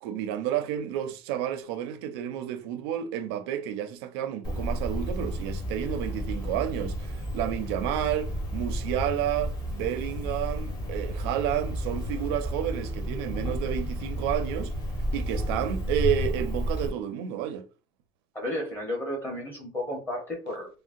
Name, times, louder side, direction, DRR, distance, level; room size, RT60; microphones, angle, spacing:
voice 1, 0.0-14.7 15.1-17.7, right 10 dB, 85° right, 0.5 m, -31 dB
Cricket, 4.4-16.9, equal, 30° left, 1.2 m, -32 dB
voice 2, 18.3-20.7, left 1 dB, 15° left, 0.8 m, -33 dB
3.7 x 2.1 x 2.5 m
cardioid pair, 155°, 13 cm